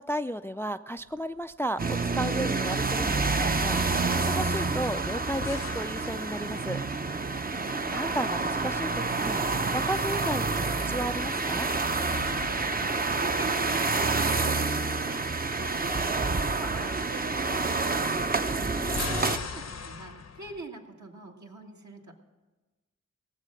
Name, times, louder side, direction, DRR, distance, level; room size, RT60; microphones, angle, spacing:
voice 1, 0.0-6.8 7.9-9.4 9.7-11.7 18.6-19.2, equal, 10° left, 11 dB, 0.3 m, -34 dB
sound 1, 1.0-1.6 1.9-2.0 5.4-7.1 11.6-14.2 18.6-20.6, left 5 dB, 60° left, 0.7 m, -41 dB
sound 2, 1.8-19.4, right 3 dB, 30° right, 0.6 m, -28 dB
voice 2, 12.1-22.2, right 3 dB, 70° right, 0 dB, 1.9 m, -43 dB
18.0 x 7.5 x 6.4 m, 1.2 s
wide cardioid pair, 50°, 30 cm